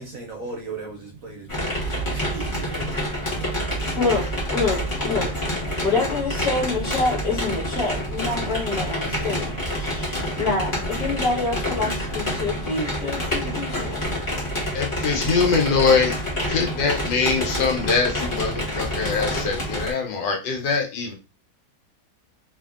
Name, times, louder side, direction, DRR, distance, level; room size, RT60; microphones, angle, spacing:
voice 1, 0.0-3.2, right 3 dB, 70° right, 0.8 m, -37 dB
sound 1, 1.5-19.9, equal, 30° left, 1.3 m, -27 dB
voice 2, 3.9-14.0, left 3 dB, 5° right, 0.4 m, -27 dB
voice 3, 14.7-16.1 16.5-21.1, left 5 dB, 80° left, 1.4 m, -23 dB
2.8 x 2.6 x 2.4 m
omnidirectional pair, 1.9 m